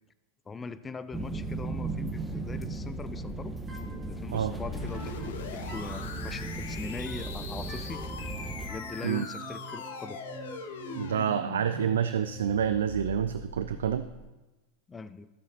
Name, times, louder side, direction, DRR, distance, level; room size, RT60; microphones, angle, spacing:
voice 1, 0.5-3.5 4.1-8.0 8.6-10.2 13.7-13.8 14.9-15.3, left 4 dB, 20° left, 13 dB, 0.5 m, -41 dB
sound 1, 1.1-8.7, right 2 dB, 5° right, 1.1 m, -36 dB
sound 2, 3.7-13.2, right 2 dB, 20° right, 2.3 m, -46 dB
sound 3, 4.6-14.3, left 5 dB, 65° left, 0.8 m, -42 dB
voice 2, 10.9-14.1, right 9 dB, 70° right, 11 dB, 0.3 m, -28 dB
15.0 x 6.4 x 2.8 m, 1.1 s
figure-of-eight pair, 85°, 0 cm